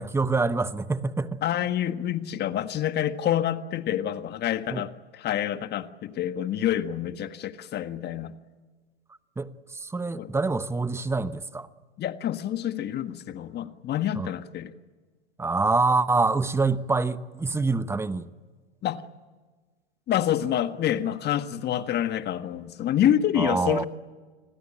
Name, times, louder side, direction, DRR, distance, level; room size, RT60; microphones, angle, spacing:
voice 1, 0.0-1.4 4.7-4.8 9.4-11.7 14.2-14.3 15.4-18.3 23.4-23.8, right 3 dB, 10° right, 1.0 m, -26 dB
voice 2, 1.4-8.4 10.2-10.3 12.0-14.7 18.8-19.0 20.1-23.8, left 11 dB, 30° left, 1.6 m, -27 dB
29.5 x 21.0 x 8.7 m
hypercardioid pair, 110°, 33 cm